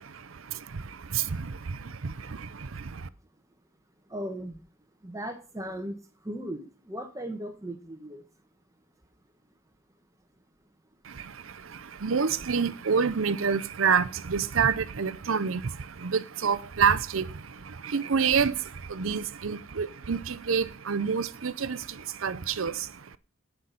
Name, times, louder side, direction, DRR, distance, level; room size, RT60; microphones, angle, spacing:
voice 1, 0.0-3.1 11.0-23.2, right 6 dB, 80° right, 0.7 m, -28 dB
voice 2, 4.1-4.6 5.0-6.0 6.2-8.2, right 1 dB, 15° right, 1.2 m, -37 dB
17.0 x 6.0 x 4.1 m
head